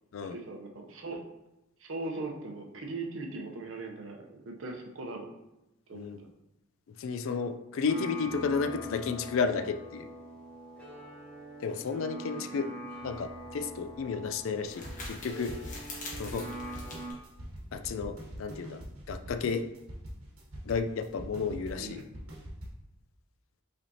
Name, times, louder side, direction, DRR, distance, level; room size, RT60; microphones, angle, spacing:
voice 1, 0.3-1.2 1.8-5.3 5.9-6.3 12.3-12.6 21.8-22.1, right 2 dB, 65° right, 2 dB, 0.7 m, -40 dB
voice 2, 7.0-10.1 11.6-12.6 13.0-14.8 15.1-15.5 16.2-16.5 17.7-18.8 19.1-19.6 20.7-22.0, left 5 dB, 70° left, 8 dB, 0.3 m, -32 dB
sound 1, 7.9-17.1, right 1 dB, 5° left, 1.0 m, -44 dB
sound 2, 13.1-18.3, left 2 dB, 40° left, 1.1 m, -47 dB
sound 3, 14.7-22.7, equal, 85° right, 1.1 m, -44 dB
5.1 x 3.4 x 2.7 m, 0.91 s
head